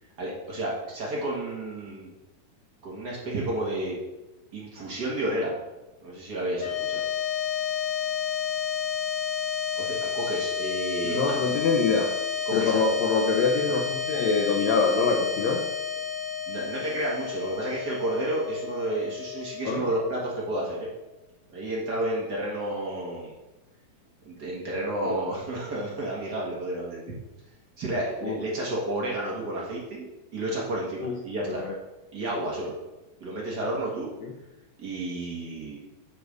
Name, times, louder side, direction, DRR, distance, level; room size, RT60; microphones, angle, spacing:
voice 1, 0.2-2.1 2.8-4.0 4.5-5.6 6.0-7.0 9.8-11.4 12.4-12.8 13.7-13.8 16.5-20.9 21.5-23.3 24.2-27.1 27.8-30.0 30.3-31.6 32.1-32.7 33.2-34.1 34.8-35.8, right 1 dB, 60° right, -4 dB, 1.1 m, -31 dB
sound 1, 6.6-21.0, left 7 dB, 65° left, 1.7 m, -31 dB
voice 2, 11.0-12.1 12.5-15.6 19.6-19.8 25.0-25.2 28.2-28.4 31.0-31.1 31.5-31.7 34.2-34.3, left 4 dB, 80° left, 1 dB, 1.5 m, -25 dB
8.9 x 3.3 x 6.4 m, 1.0 s
omnidirectional pair, 4.1 m